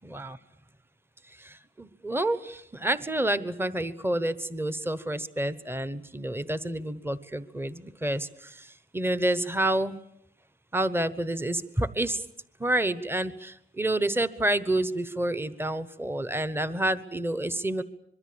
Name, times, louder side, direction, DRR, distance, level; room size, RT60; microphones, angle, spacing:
voice 1, 0.0-0.4 1.4-8.3 8.9-10.0 10.7-12.2 12.6-17.8, right 1 dB, 10° right, 14 dB, 1.1 m, -28 dB
24.5 x 23.0 x 8.7 m, 0.71 s
wide cardioid pair, 130°, 21 cm